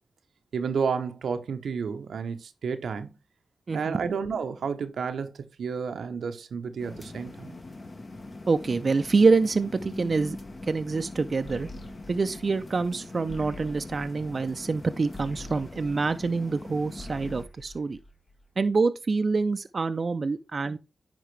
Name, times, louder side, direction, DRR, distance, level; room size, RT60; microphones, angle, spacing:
voice 1, 0.5-3.1 3.7-7.5, right 6 dB, 85° right, 0.7 m, -31 dB
voice 2, 3.7-4.0 8.5-10.4 10.7-11.7 12.1-18.0 18.6-20.8, right 4 dB, 50° right, 0.5 m, -26 dB
sound 1, 6.8-17.4, left 2 dB, 40° left, 1.0 m, -42 dB
sound 2, 11.5-16.6 16.9-18.7, left 1 dB, 60° left, 1.8 m, -46 dB
10.0 x 3.7 x 3.1 m
cardioid pair, 60°, 0 cm